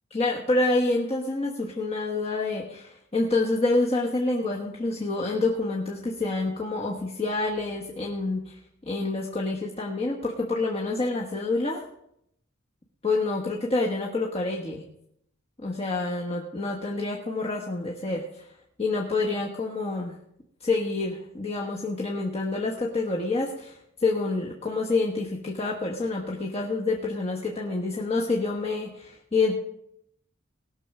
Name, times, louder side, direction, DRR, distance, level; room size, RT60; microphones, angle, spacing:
voice 1, 0.1-11.8 13.0-14.8 15.6-18.4 18.8-20.2 20.6-29.5, left 3 dB, 30° left, -2 dB, 1.3 m, -27 dB
18.5 x 6.5 x 6.1 m, 0.77 s
head